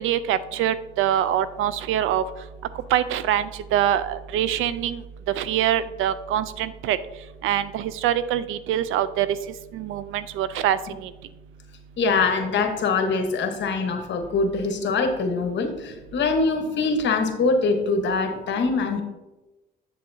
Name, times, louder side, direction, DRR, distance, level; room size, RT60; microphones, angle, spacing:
voice 1, 0.0-2.2 2.9-5.0 5.4-7.0 7.4-9.3 9.7-11.1, right 11 dB, 85° right, 15 dB, 0.4 m, -24 dB
voice 2, 12.0-19.0, left 4 dB, 65° left, 6 dB, 1.1 m, -23 dB
7.6 x 7.4 x 2.7 m, 1.1 s
cardioid pair, 90°, 20 cm